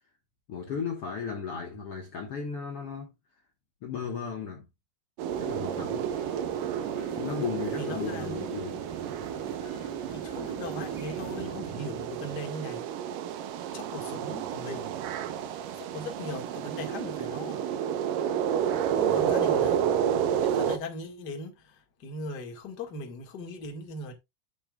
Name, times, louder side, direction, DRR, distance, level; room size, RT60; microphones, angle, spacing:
voice 1, 0.5-3.1 3.8-4.7 5.4-6.1 7.2-8.8, left 6 dB, 50° left, 2.0 m, -35 dB
sound 1, 5.2-20.8, right 9 dB, 80° right, 2.5 m, -30 dB
sound 2, 5.3-11.5, right 1 dB, 10° right, 1.7 m, -48 dB
voice 2, 7.8-8.5 10.1-12.8 13.7-15.0 15.8-17.6 18.9-19.8 20.4-21.6 22.0-24.1, left 2 dB, 35° left, 2.0 m, -39 dB
12.0 x 7.1 x 2.4 m
omnidirectional pair, 3.9 m